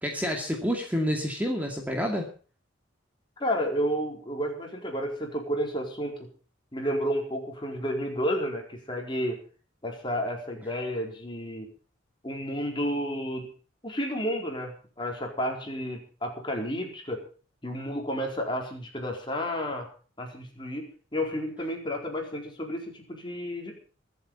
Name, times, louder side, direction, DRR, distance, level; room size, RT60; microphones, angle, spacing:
voice 1, 0.0-2.3, equal, 10° right, 1 dB, 2.4 m, -28 dB
voice 2, 3.4-6.3 6.7-9.4 9.8-11.7 12.2-13.5 13.8-17.2 17.6-19.9 20.2-20.8 21.1-23.8, equal, 25° left, 1 dB, 4.5 m, -31 dB
24.0 x 8.3 x 5.5 m, 0.40 s
head